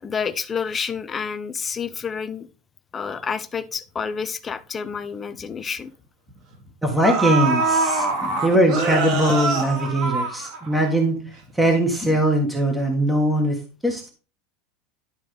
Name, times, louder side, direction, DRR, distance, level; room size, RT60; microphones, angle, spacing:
voice 1, 0.0-2.5 2.9-5.9 8.2-8.4 12.0-12.1, left 6 dB, 15° left, 0.7 m, -29 dB
sound 1, 4.8-4.9 5.3-5.5 6.5-6.6 7.0-10.9 11.3-11.4, right 3 dB, 45° right, 2.3 m, -24 dB
voice 2, 6.8-8.1 8.4-14.1, right 1 dB, 5° right, 1.4 m, -21 dB
11.0 x 4.8 x 3.3 m
supercardioid pair, 170°, 0 cm